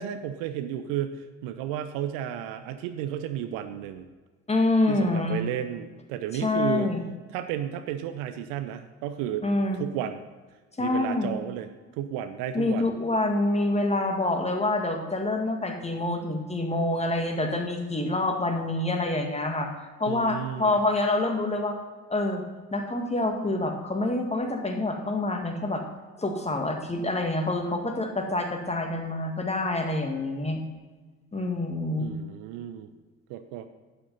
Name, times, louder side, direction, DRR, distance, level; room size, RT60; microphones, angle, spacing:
voice 1, 0.0-4.1 4.9-6.9 7.3-9.4 9.8-10.2 10.8-12.9 20.0-20.8 32.0-32.9 33.3-33.7, right 10 dB, 60° right, 9 dB, 0.8 m, -33 dB
voice 2, 4.5-5.4 6.3-7.1 9.4-9.8 10.8-11.3 12.5-19.7 20.0-21.8 22.1-22.4 22.7-25.8 26.2-30.6 31.3-32.2, left 2 dB, 15° left, 3 dB, 2.1 m, -26 dB
12.0 x 10.0 x 4.1 m, 1.3 s
figure-of-eight pair, 50°, 39 cm